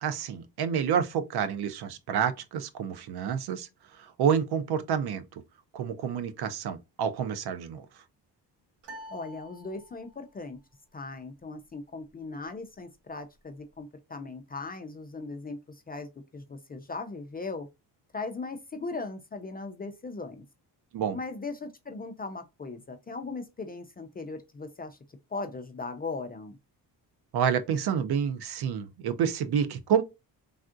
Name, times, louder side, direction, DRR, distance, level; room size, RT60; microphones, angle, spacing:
voice 1, 0.0-3.7 4.0-5.2 5.7-7.9 20.9-21.2 27.3-30.0, right 8 dB, 65° right, 0.6 m, -28 dB
sound 1, 8.8-10.3, equal, 80° right, 1.3 m, -47 dB
voice 2, 9.1-10.6 10.9-17.7 18.1-20.4 21.1-25.0 25.3-26.6, left 3 dB, 25° left, 0.3 m, -38 dB
3.4 x 2.4 x 2.4 m
cardioid pair, 100°, 43 cm